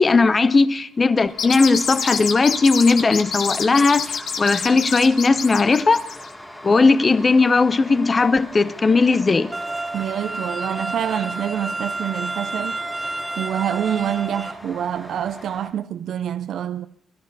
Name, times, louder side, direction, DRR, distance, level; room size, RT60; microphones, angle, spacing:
voice 1, 0.0-6.0 6.6-9.5, left 4 dB, 30° left, 0.7 m, -17 dB
sound 1, 1.0-15.7, left 1 dB, 5° left, 1.6 m, -40 dB
sound 2, 1.3-6.3, left 6 dB, 65° left, 1.7 m, -27 dB
sound 3, 9.5-14.5, right 2 dB, 15° right, 1.0 m, -30 dB
voice 2, 9.9-13.1 13.4-16.9, right 10 dB, 70° right, 0.6 m, -26 dB
22.5 x 14.0 x 4.1 m
cardioid pair, 115°, 0 cm